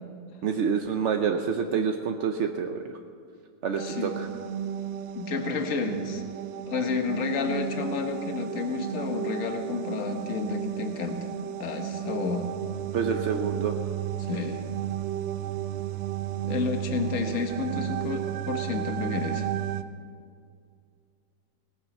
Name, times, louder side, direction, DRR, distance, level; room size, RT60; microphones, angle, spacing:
voice 1, 0.4-3.0 3.6-4.3 12.9-13.8, right 6 dB, 65° right, 5 dB, 0.7 m, -27 dB
voice 2, 3.8-4.1 5.1-6.2 6.7-11.2 11.6-12.4 14.3-14.6 16.4-19.4, left 5 dB, 50° left, 5 dB, 1.5 m, -30 dB
sound 1, 3.8-19.8, right 11 dB, 85° right, 1.3 m, -33 dB
18.5 x 9.6 x 6.9 m, 2.2 s
omnidirectional pair, 2.0 m